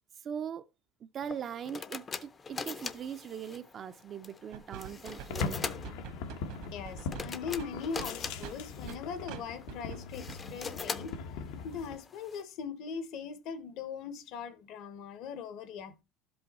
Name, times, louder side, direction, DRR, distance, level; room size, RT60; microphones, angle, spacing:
voice 1, 0.2-0.7 1.1-5.6, right 8 dB, 35° right, 0.4 m, -40 dB
sound 1, 1.2-12.4, left 5 dB, 20° left, 0.5 m, -43 dB
sound 2, 4.5-9.0 9.3-9.4 9.7-10.0 10.3-10.4, right 8 dB, 75° right, 1.4 m, -45 dB
sound 3, 5.3-12.0, left 5 dB, 85° left, 1.0 m, -40 dB
voice 2, 6.7-11.2 11.6-16.0, left 6 dB, 55° left, 0.9 m, -40 dB
12.0 x 5.5 x 4.1 m
cardioid pair, 155°, 0 cm